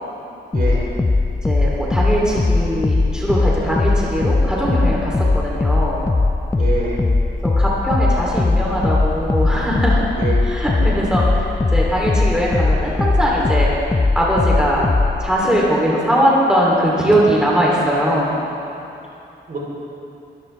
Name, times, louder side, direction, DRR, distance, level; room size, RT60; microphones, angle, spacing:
sound 1, 0.5-15.3, left 3 dB, 15° left, 0.4 m, -19 dB
voice 1, 0.5-0.9 6.6-7.0 10.2-10.4 19.5-19.6, right 3 dB, 50° right, -4 dB, 3.7 m, -25 dB
voice 2, 1.4-6.0 7.4-10.1 10.4-13.7 14.1-14.8 15.2-18.4, equal, 5° right, -5 dB, 3.1 m, -20 dB
23.0 x 14.0 x 3.4 m, 2.8 s
wide cardioid pair, 115°, 19 cm